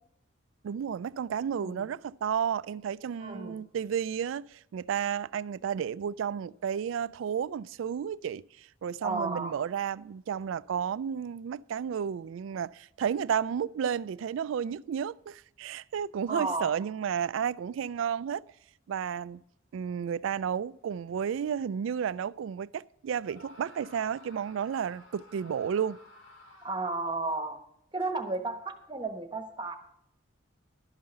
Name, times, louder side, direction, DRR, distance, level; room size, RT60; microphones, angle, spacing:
voice 1, 0.6-18.4 18.9-19.4 19.7-26.0, right 8 dB, 75° right, 0.3 m, -32 dB
voice 2, 1.6-1.9 3.2-3.6 9.0-9.6 16.3-16.7 26.6-27.6 27.9-29.8, right 3 dB, 25° right, 1.2 m, -33 dB
Screaming, 23.2-27.0, left 2 dB, 70° left, 2.2 m, -54 dB
12.0 x 5.5 x 7.7 m
head